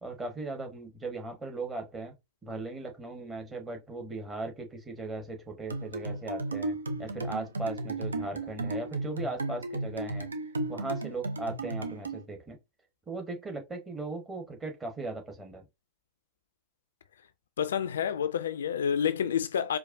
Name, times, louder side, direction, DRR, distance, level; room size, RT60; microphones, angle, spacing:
voice 1, 0.0-2.1 2.4-10.3 10.7-12.6 13.1-15.6, right 3 dB, 15° right, 1.2 m, -38 dB
sound 1, 5.7-12.2, right 2 dB, 75° right, 0.5 m, -34 dB
voice 2, 17.6-19.8, left 8 dB, 65° left, 0.3 m, -29 dB
4.6 x 2.2 x 2.6 m
figure-of-eight pair, 90°, 0 cm